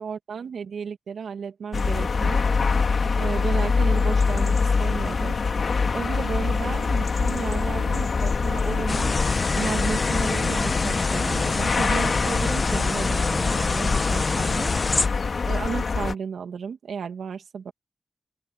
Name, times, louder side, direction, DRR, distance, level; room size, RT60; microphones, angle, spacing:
voice 1, 0.0-2.5 3.1-5.7 5.9-9.2 9.5-14.7 15.5-17.7, right 6 dB, 85° right, 2.6 m, -33 dB
sound 1, 1.7-16.1, left 4 dB, 45° left, 2.8 m, -24 dB
sound 2, 8.9-15.1, left 3 dB, 30° left, 1.4 m, -26 dB
open air
wide cardioid pair, 170°, 0 cm